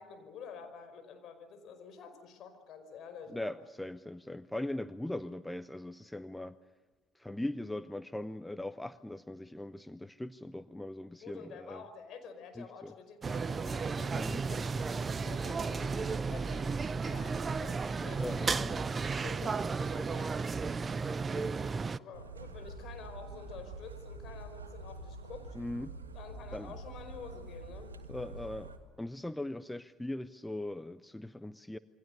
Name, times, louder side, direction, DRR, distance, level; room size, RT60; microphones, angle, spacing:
voice 1, 0.0-3.5 11.2-20.4 22.0-25.6 26.1-27.9 28.2-28.3, left 5 dB, 50° left, 7 dB, 5.0 m, -49 dB
voice 2, 3.3-6.6 7.1-11.8 12.6-12.9 14.1-14.4 18.2-18.8 21.4-21.8 25.5-25.9 26.5-26.8 28.1-28.7 29.0-31.8, left 1 dB, 5° left, 14 dB, 0.8 m, -40 dB
sound 1, 13.2-22.0, right 4 dB, 30° right, 0.7 m, -33 dB
sound 2, 22.1-28.8, right 2 dB, 85° right, 1.7 m, -46 dB
28.0 x 23.5 x 6.7 m, 1.4 s
figure-of-eight pair, 60°, 0 cm